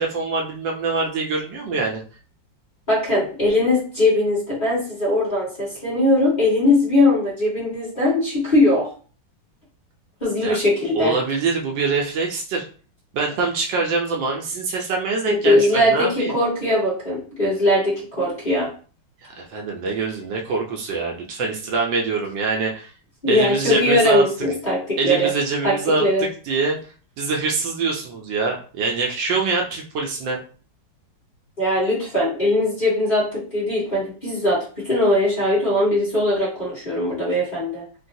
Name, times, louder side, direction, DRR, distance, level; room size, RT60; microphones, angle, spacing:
voice 1, 0.0-2.0 10.4-10.6 10.9-12.6 13.1-16.3 19.2-22.9 23.3-24.2 25.0-26.8 27.2-30.4, right 4 dB, 75° right, 0 dB, 1.3 m, -24 dB
voice 2, 2.9-8.9 10.2-11.2 15.3-18.7 23.2-25.3 25.6-26.2 31.6-34.6 34.8-37.8, left 1 dB, 25° left, -8 dB, 1.3 m, -20 dB
3.8 x 2.2 x 2.6 m, 0.40 s
omnidirectional pair, 2.1 m